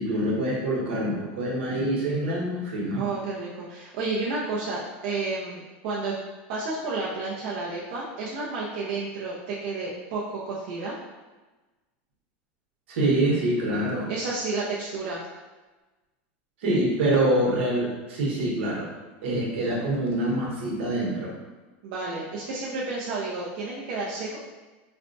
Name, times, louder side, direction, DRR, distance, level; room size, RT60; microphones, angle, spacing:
voice 1, 0.0-3.0 12.9-14.1 16.6-18.9 19.2-21.3, right 1 dB, 85° right, -4 dB, 1.1 m, -25 dB
voice 2, 3.0-6.2 6.5-10.9 14.1-15.2 21.8-24.4, right 3 dB, 60° right, -6 dB, 0.6 m, -31 dB
4.1 x 2.2 x 2.6 m, 1.2 s
supercardioid pair, 145°, 6 cm